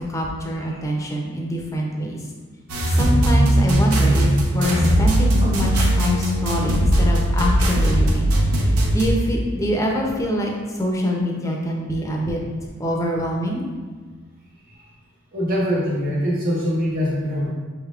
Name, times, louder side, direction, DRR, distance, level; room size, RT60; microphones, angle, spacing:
voice 1, 0.0-2.2 2.9-8.3 8.6-12.4 12.8-13.6, equal, 15° left, -1 dB, 0.5 m, -25 dB
sound 1, 2.7-9.1, right 1 dB, 90° right, 0.8 m, -18 dB
voice 2, 15.3-17.5, equal, 40° right, -5 dB, 1.1 m, -23 dB
6.1 x 3.4 x 2.4 m, 1.4 s
head